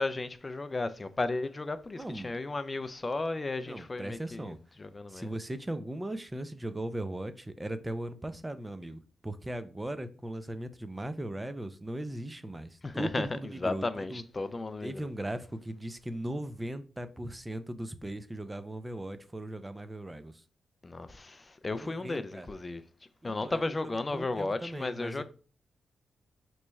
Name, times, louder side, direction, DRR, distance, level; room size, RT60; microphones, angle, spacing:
voice 1, 0.0-5.3 12.8-15.1 20.8-22.8 23.2-25.2, left 3 dB, 35° left, 0.4 m, -34 dB
voice 2, 1.9-2.3 3.7-4.6 5.1-13.8 14.1-14.2 14.8-20.3 21.7-22.5 23.2-25.2, right 1 dB, 20° right, 0.5 m, -38 dB
3.1 x 2.2 x 4.1 m
supercardioid pair, 45°, 0 cm